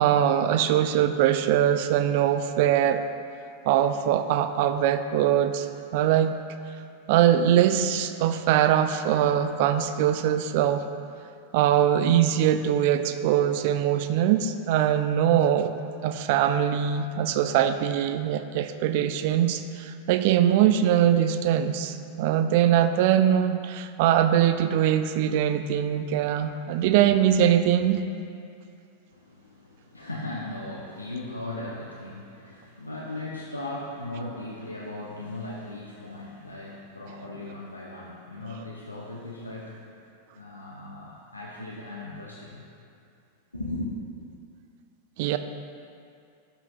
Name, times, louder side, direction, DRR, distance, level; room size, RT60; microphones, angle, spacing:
voice 1, 0.0-3.0 3.7-5.7 5.9-6.4 7.1-10.8 11.5-15.7 16.0-28.0 45.2-45.4, right 10 dB, 50° right, 10 dB, 0.3 m, -22 dB
voice 2, 29.1-40.0 40.3-42.6 43.5-43.9, left 2 dB, 85° left, -4 dB, 0.7 m, -37 dB
12.5 x 5.9 x 2.3 m, 2.4 s
figure-of-eight pair, 90°, 0 cm